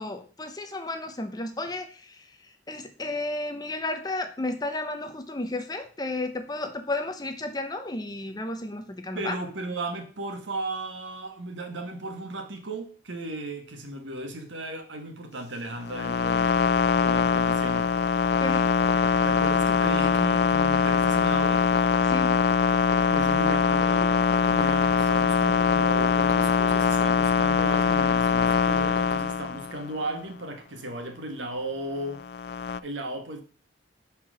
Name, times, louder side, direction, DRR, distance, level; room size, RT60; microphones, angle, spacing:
voice 1, 0.0-2.4 2.7-9.4 18.4-18.7 22.1-22.4, left 2 dB, 20° left, 0.7 m, -33 dB
voice 2, 9.1-16.6 16.9-17.9 19.2-21.6 23.1-32.2 32.8-33.4, right 2 dB, 80° right, 1.4 m, -35 dB
sound 1, 15.8-29.9 32.2-32.8, left 5 dB, 55° left, 0.3 m, -23 dB
5.8 x 4.5 x 6.1 m
head